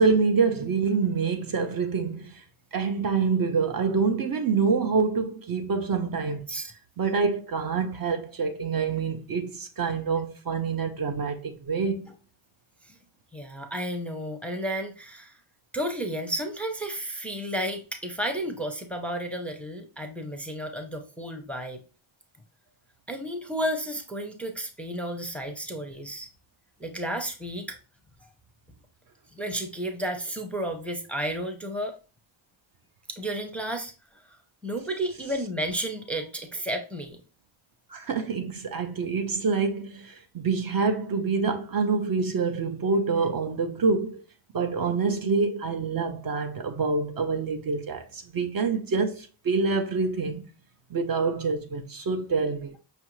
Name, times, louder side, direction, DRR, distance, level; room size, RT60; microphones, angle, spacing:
voice 1, 0.0-2.4 2.7-6.5 7.0-12.1 37.9-44.2 44.5-50.4 50.9-52.8, right 4 dB, 50° right, 0.5 m, -26 dB
voice 2, 13.3-15.4 15.7-21.8 23.1-26.3 26.8-27.8 29.3-32.0 33.1-33.9 34.3-34.4 34.6-37.2, right 1 dB, 5° left, 0.5 m, -32 dB
5.5 x 2.5 x 3.0 m
wide cardioid pair, 115°, 47 cm